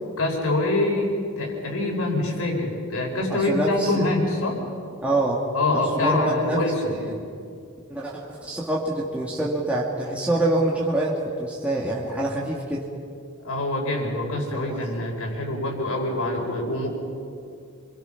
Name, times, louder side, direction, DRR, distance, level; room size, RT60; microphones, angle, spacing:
voice 1, 0.2-4.6 5.5-7.0 13.4-16.9, left 2 dB, 85° left, 0 dB, 5.0 m, -25 dB
voice 2, 3.3-4.1 5.0-5.4 5.7-6.6 6.9-7.2 7.9-12.8 14.5-14.8, right 1 dB, 5° right, -5 dB, 2.1 m, -26 dB
27.0 x 22.5 x 5.9 m, 2.3 s
head